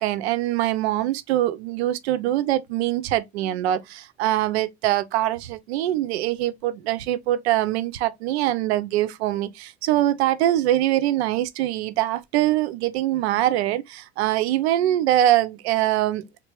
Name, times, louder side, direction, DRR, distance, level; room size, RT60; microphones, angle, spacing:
voice 1, 0.0-16.3, right 13 dB, 85° right, 0.5 m, -23 dB
3.3 x 2.6 x 3.0 m
hypercardioid pair, 75°, 31 cm